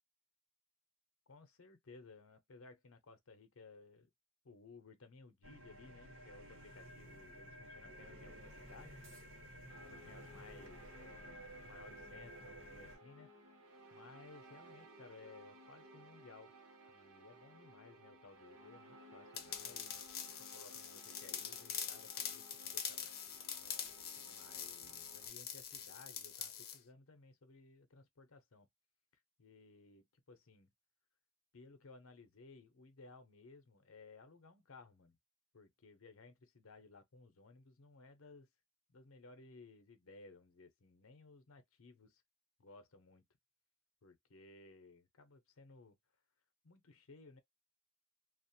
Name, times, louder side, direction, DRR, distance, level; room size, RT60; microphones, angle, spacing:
voice 1, 1.3-4.1 4.4-9.0 9.8-13.3 13.9-16.5 16.9-20.0 20.3-23.1 24.2-28.7 29.4-30.7 31.5-35.2 35.5-38.5 38.9-42.2 42.6-43.2 44.0-46.0 46.6-47.4, left 3 dB, 90° left, 0.7 m, -59 dB
sound 1, 5.4-13.0, equal, 75° right, 1.2 m, -54 dB
sound 2, 9.7-25.3, right 1 dB, 90° right, 0.9 m, -59 dB
sound 3, 19.3-26.8, left 8 dB, 50° left, 0.6 m, -45 dB
2.4 x 2.1 x 2.7 m
head